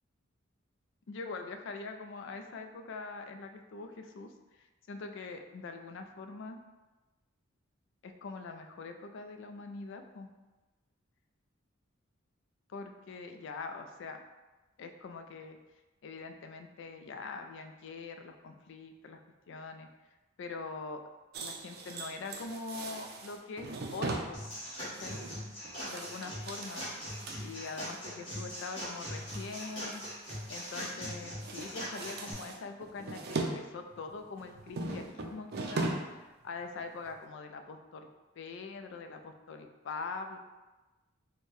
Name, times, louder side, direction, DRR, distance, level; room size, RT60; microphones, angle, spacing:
voice 1, 1.1-4.3 4.9-6.6 8.0-10.3 12.7-14.2 14.8-15.6 16.0-19.2 19.5-19.9 20.4-21.0 21.4-24.4 24.8-25.2 25.9-26.9 27.4-30.0 30.5-35.9 36.4-38.1 38.4-40.4, left 4 dB, 65° left, 6 dB, 0.4 m, -43 dB
sound 1, 21.3-28.0 28.4-28.7 28.9-31.1 31.4-33.6 33.9-36.2 36.5-36.6 37.1-37.2, right 2 dB, 50° right, 0.4 m, -40 dB
sound 2, 24.3-32.3, equal, 25° left, 1.5 m, -41 dB
4.4 x 2.2 x 3.1 m, 1.1 s
head